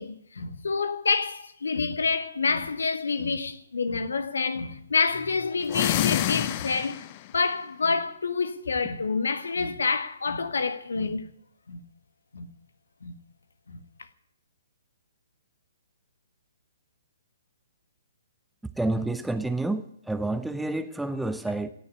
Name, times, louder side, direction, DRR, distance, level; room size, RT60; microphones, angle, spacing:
voice 1, 0.0-11.3 11.7-11.8 12.3-12.5 13.0-13.2 13.7-13.8, left 4 dB, 65° left, 1.5 m, -28 dB
sound 1, 5.6-7.3, left 14 dB, 35° left, 0.7 m, -27 dB
voice 2, 18.8-21.7, right 2 dB, 5° right, 0.8 m, -29 dB
18.5 x 6.9 x 9.8 m
figure-of-eight pair, 125°, 0 cm